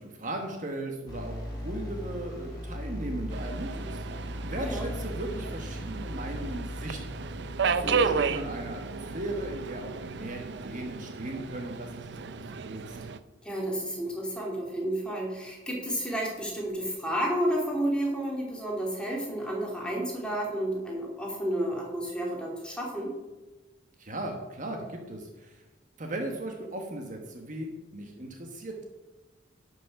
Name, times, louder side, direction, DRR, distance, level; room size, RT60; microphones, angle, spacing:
voice 1, 0.0-7.3 7.6-13.0 24.0-25.6 26.0-28.8, right 1 dB, 40° right, 2 dB, 1.3 m, -37 dB
sound 1, 1.1-9.6, equal, 20° left, 3.3 m, -38 dB
Subway metro underground, 3.3-13.2, right 5 dB, 60° right, 0.5 m, -33 dB
voice 2, 4.6-4.9 7.8-8.1 13.4-23.1, right 1 dB, 5° left, -2 dB, 2.5 m, -31 dB
11.5 x 6.2 x 5.9 m, 1.1 s
head